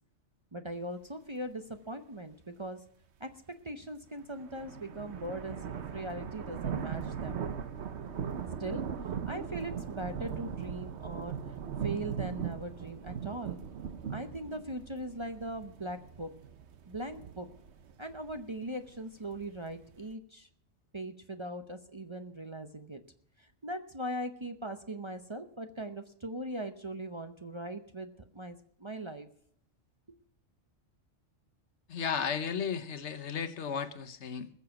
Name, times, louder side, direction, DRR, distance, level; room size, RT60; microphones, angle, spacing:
voice 1, 0.5-2.8 3.2-3.3 3.6-7.5 8.6-11.4 11.8-13.6 14.1-16.3 16.9-17.5 18.0-20.5 20.9-23.0 23.4-29.3, right 1 dB, 30° right, 7 dB, 0.7 m, -40 dB
sound 1, 4.2-20.1, right 7 dB, 65° right, 1.1 m, -39 dB
voice 2, 31.9-34.5, left 7 dB, 70° left, 9 dB, 1.2 m, -34 dB
20.0 x 6.9 x 5.8 m, 0.65 s
omnidirectional pair, 1.2 m